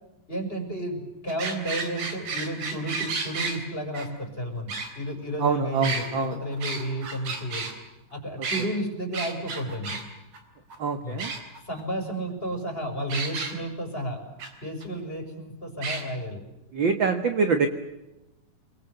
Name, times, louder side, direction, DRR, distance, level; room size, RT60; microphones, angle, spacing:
voice 1, 0.3-7.7 8.1-10.0 11.0-11.2 11.6-14.2 14.6-16.4, right 1 dB, 15° left, 4 dB, 6.0 m, -32 dB
sound 1, 1.3-3.6 3.9-4.1 4.7-5.4 5.8-7.7 8.4-8.7 9.1-10.0 10.3-10.4 10.7-10.8 11.2-11.8 13.1-13.5 14.4-14.5 14.8-14.9 15.8-16.0, right 4 dB, 90° right, 5.4 m, -32 dB
voice 2, 5.4-6.4 10.8-11.3 16.7-17.7, right 5 dB, 45° right, 8 dB, 1.7 m, -25 dB
29.0 x 23.0 x 8.0 m, 0.98 s
omnidirectional pair, 3.7 m